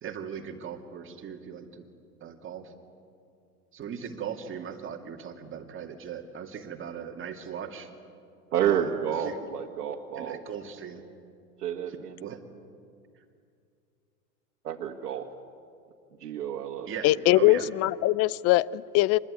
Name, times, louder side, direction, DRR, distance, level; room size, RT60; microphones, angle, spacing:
voice 1, 0.0-1.8 2.2-2.7 3.7-7.9 8.6-8.9 9.2-9.5 10.2-11.0 11.9-12.4 16.9-17.7, right 8 dB, 25° right, 3 dB, 2.4 m, -39 dB
voice 2, 8.5-10.4 11.6-12.4 14.6-15.3 16.2-16.9, right 9 dB, 85° right, -2 dB, 1.9 m, -30 dB
voice 3, 17.0-19.2, left 17 dB, 35° left, 21 dB, 0.6 m, -22 dB
26.0 x 21.0 x 9.5 m, 2.4 s
hypercardioid pair, 110°, 46 cm